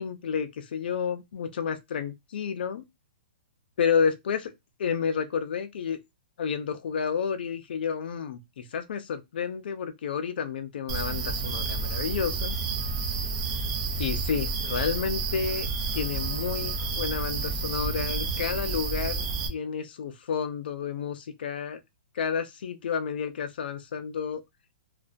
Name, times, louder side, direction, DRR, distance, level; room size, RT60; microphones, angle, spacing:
voice 1, 0.0-2.8 3.8-4.5 4.8-6.0 6.4-12.5 14.0-21.8 22.1-24.4, left 6 dB, 65° left, 0.4 m, -30 dB
sound 1, 10.9-19.5, right 4 dB, 30° right, 0.4 m, -30 dB
2.4 x 2.2 x 2.4 m
hypercardioid pair, 165°, 6 cm